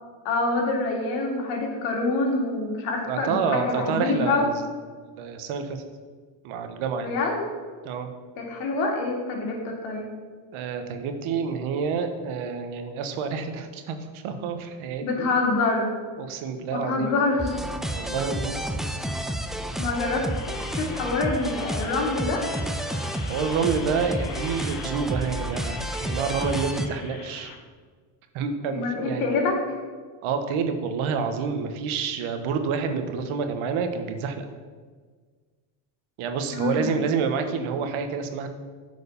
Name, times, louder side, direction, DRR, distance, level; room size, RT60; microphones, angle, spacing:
voice 1, 0.2-4.6 7.0-7.5 8.4-10.0 15.0-15.9 16.7-17.7 19.8-20.2 20.7-22.4 28.7-29.6 36.5-36.9, left 3 dB, 80° left, 1 dB, 2.3 m, -26 dB
voice 2, 3.1-4.6 5.2-5.8 6.4-7.1 7.8-8.1 10.5-15.3 16.2-17.1 17.9-18.6 23.3-27.5 28.3-29.3 30.2-34.5 36.2-38.5, right 5 dB, 70° right, 7 dB, 1.3 m, -28 dB
sound 1, 17.4-26.9, right 1 dB, ahead, 0.3 m, -31 dB
sound 2, 19.6-27.5, left 6 dB, 60° left, 1.3 m, -42 dB
8.3 x 5.0 x 6.9 m, 1.5 s
supercardioid pair, 100°, 50 cm